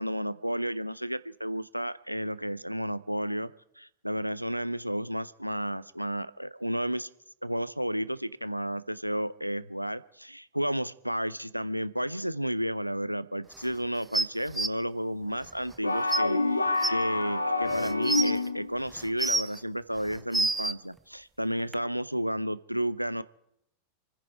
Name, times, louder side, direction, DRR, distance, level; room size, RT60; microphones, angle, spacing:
voice 1, 0.0-7.1 7.4-23.2, equal, 90° right, 16 dB, 0.5 m, -32 dB
sound 1, 14.1-14.7 15.7-15.8 16.1-16.2 16.8-16.9 17.7-18.3 19.0-19.6 20.1-20.7 21.7-21.8, right 2 dB, 5° right, 0.6 m, -27 dB
sound 2, 15.8-18.7, left 2 dB, 85° left, 1.2 m, -27 dB
28.5 x 10.0 x 4.6 m, 0.76 s
figure-of-eight pair, 90°, 0 cm